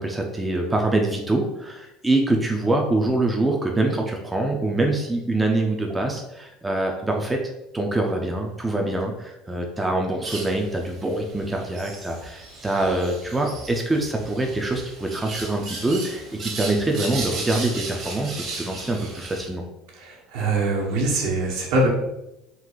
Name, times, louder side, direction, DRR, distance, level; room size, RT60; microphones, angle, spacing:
voice 1, 0.0-7.4 7.7-19.6, right 2 dB, 10° right, 2 dB, 0.4 m, -24 dB
sound 1, 10.2-19.5, right 3 dB, 40° right, 1.0 m, -36 dB
voice 2, 20.0-21.9, right 2 dB, 70° right, -2 dB, 1.2 m, -23 dB
3.8 x 2.4 x 4.6 m, 0.91 s
cardioid pair, 160°, 0 cm